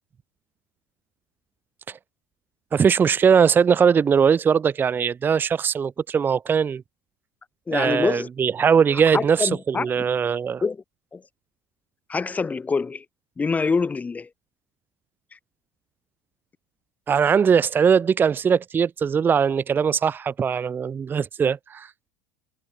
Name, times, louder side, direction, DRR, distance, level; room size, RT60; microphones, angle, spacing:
voice 1, 2.7-6.8 7.7-10.6 17.1-21.9, right 7 dB, 25° right, 0.7 m, -20 dB
voice 2, 7.7-8.3 8.9-10.0 10.6-10.8 11.1-11.2 12.1-13.0 13.4-14.3 15.3-15.4, left 4 dB, 20° left, 1.2 m, -25 dB
supercardioid pair, 120°, 8 cm